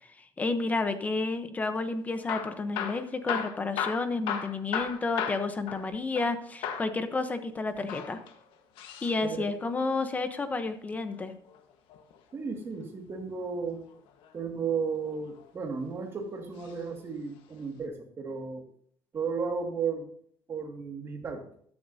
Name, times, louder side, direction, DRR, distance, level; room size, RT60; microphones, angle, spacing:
voice 1, 0.2-8.2 9.0-11.4, left 3 dB, 20° left, 9 dB, 0.8 m, -31 dB
Hammer / Drill, 2.1-6.4 6.6-6.9 7.8-9.2 10.9-12.2 13.9-14.3 15.1-15.9 16.6-16.8 17.1-17.2 17.8-17.9, left 8 dB, 90° left, 1.4 m, -36 dB
voice 2, 12.3-13.9 14.3-18.7 19.1-20.1 20.5-21.5, right 5 dB, 30° right, 2 dB, 2.1 m, -34 dB
14.0 x 11.5 x 2.7 m, 0.63 s
cardioid pair, 165°, 8 cm